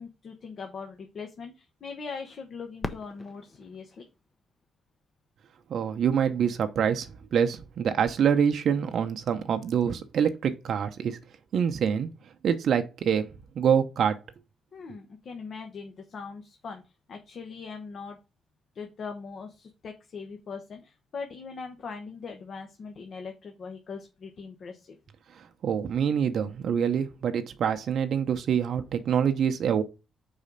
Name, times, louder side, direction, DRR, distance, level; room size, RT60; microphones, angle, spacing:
voice 1, 0.0-4.1 14.7-16.8 17.1-18.2 18.7-25.0, left 5 dB, 55° left, 1.0 m, -41 dB
Fireworks, 2.8-5.6 6.3-6.4 7.0-7.5 9.4-9.5, left 3 dB, 25° left, 0.7 m, -41 dB
voice 2, 5.7-11.2 11.5-12.1 12.4-13.3 13.6-14.2 25.6-29.8, right 8 dB, 65° right, 0.7 m, -25 dB
4.8 x 4.2 x 5.2 m
cardioid pair, 90°, 0 cm